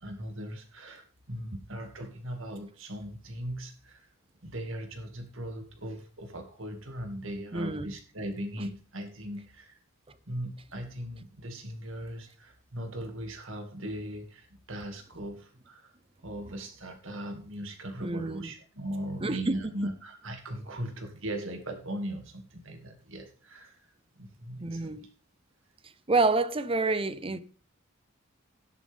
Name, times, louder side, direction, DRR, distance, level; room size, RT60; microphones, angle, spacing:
voice 1, 0.0-4.1 4.4-9.8 10.3-16.0 16.2-25.1, right 1 dB, 65° right, 2.3 m, -39 dB
voice 2, 7.5-7.9 16.5-16.6 18.0-18.5 19.2-19.7 24.6-25.0 26.1-27.4, right 3 dB, 25° right, 0.7 m, -28 dB
13.0 x 10.5 x 3.6 m
head